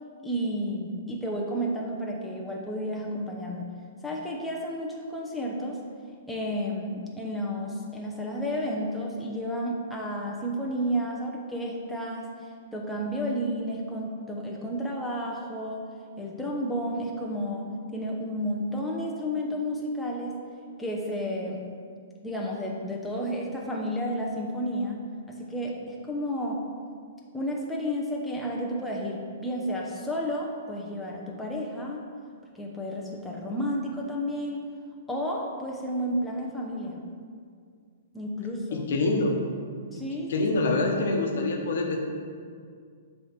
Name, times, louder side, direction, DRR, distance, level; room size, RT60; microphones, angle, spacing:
voice 1, 0.2-3.7 4.0-5.8 6.3-12.3 12.7-15.8 16.2-20.4 20.8-21.6 22.2-25.0 25.3-26.6 27.3-32.0 32.5-34.7 35.1-37.0 38.1-38.9 39.9-40.8, equal, 5° left, -3 dB, 0.8 m, -31 dB
voice 2, 38.7-39.4 40.3-42.0, left 2 dB, 65° left, 1 dB, 1.1 m, -25 dB
7.5 x 3.4 x 5.9 m, 2.1 s
hypercardioid pair, 135°, 0 cm